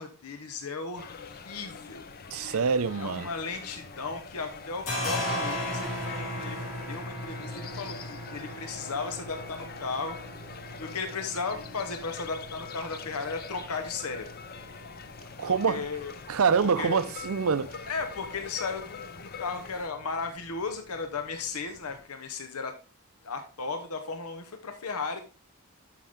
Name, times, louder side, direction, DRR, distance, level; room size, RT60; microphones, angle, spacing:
voice 1, 0.0-2.1 2.9-10.5 10.8-14.3 15.5-16.1 16.6-17.1 17.9-22.8 23.2-25.2, left 4 dB, 85° left, 0.9 m, -35 dB
sound 1, 1.0-19.9, left 5 dB, 40° left, 0.6 m, -44 dB
voice 2, 2.3-3.3 15.4-15.9 16.3-17.8, right 5 dB, 70° right, 0.5 m, -26 dB
sound 2, 3.6-4.2 4.5-22.0, left 1 dB, 60° left, 3.3 m, -39 dB
12.0 x 5.5 x 3.5 m
head